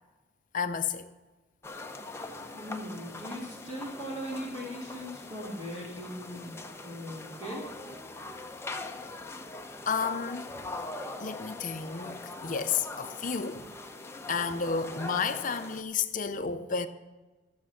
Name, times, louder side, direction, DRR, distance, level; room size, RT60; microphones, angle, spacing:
voice 1, 0.5-1.1 9.9-10.5 11.2-13.6 14.3-16.9, left 5 dB, 45° left, 0.7 m, -31 dB
sound 1, 1.6-15.8, left 2 dB, 15° left, 0.7 m, -42 dB
voice 2, 2.5-7.6, equal, 35° right, 2.5 m, -39 dB
14.5 x 7.3 x 5.9 m
head